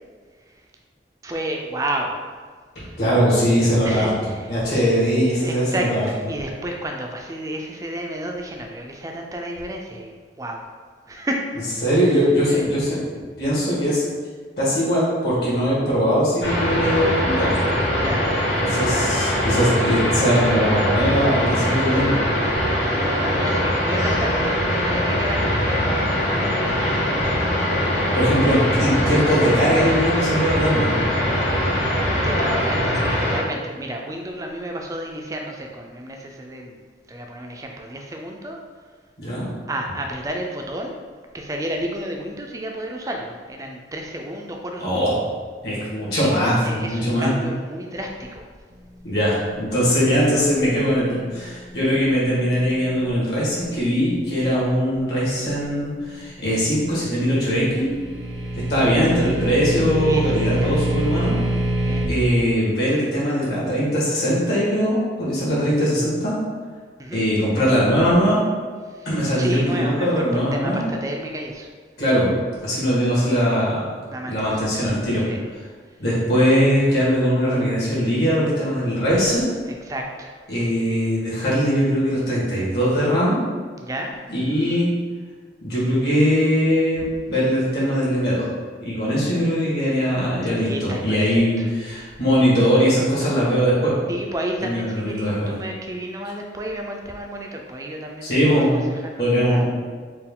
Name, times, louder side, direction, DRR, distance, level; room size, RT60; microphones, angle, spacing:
voice 1, 1.2-2.2 2.8-3.0 3.8-4.5 5.4-10.6 11.1-11.4 12.0-12.6 18.0-18.3 22.6-24.6 24.9-27.3 32.1-36.8 37.1-38.6 39.7-41.0 41.3-45.1 46.6-48.5 58.9-59.5 59.8-60.8 61.8-62.1 67.0-67.3 68.8-71.7 74.1-74.7 75.3-75.4 79.7-80.4 83.8-84.2 84.5-84.6 90.4-91.7 94.1-99.7, right 1 dB, 20° right, 2 dB, 0.3 m, -31 dB
voice 2, 3.0-4.1 4.5-6.0 11.8-13.0 13.4-14.0 14.6-17.5 18.7-22.2 28.1-30.9 39.2-39.5 44.8-45.1 45.6-47.3 49.0-57.9 58.5-61.4 62.1-66.4 67.1-68.4 69.0-70.8 72.0-72.3 72.6-73.8 74.2-75.2 76.0-79.4 80.5-83.4 84.3-84.9 85.6-88.5 88.8-93.9 94.6-95.5 98.2-98.7 99.2-99.7, equal, 65° left, -8 dB, 1.5 m, -20 dB
sound 1, 16.4-33.4, equal, 85° left, 1.0 m, -22 dB
sound 2, 57.5-62.1, right 1 dB, 85° right, 1.0 m, -25 dB
4.4 x 2.3 x 3.6 m, 1.5 s
head